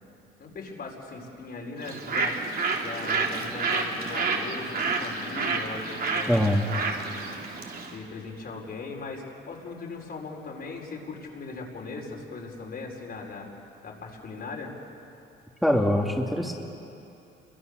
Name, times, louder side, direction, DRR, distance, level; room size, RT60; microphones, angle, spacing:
voice 1, 0.4-13.5 13.8-14.7, left 3 dB, 55° left, 0 dB, 4.9 m, -39 dB
Bird, 1.8-8.0, right 4 dB, 50° right, 3.2 m, -29 dB
voice 2, 6.3-6.6 15.6-16.5, equal, ahead, -1 dB, 2.6 m, -23 dB
29.5 x 23.0 x 6.6 m, 2.7 s
cardioid pair, 90°, 20 cm